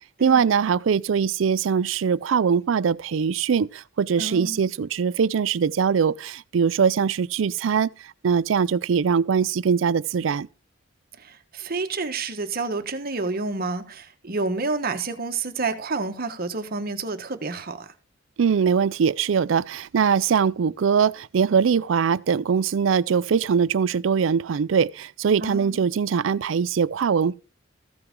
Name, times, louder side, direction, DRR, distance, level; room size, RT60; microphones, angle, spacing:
voice 1, 0.2-7.9 8.2-10.5 18.4-27.4, right 6 dB, 75° right, 0.4 m, -22 dB
voice 2, 4.2-4.6 11.2-17.9 25.4-25.9, right 3 dB, 50° right, 1.3 m, -29 dB
14.5 x 7.8 x 3.7 m
head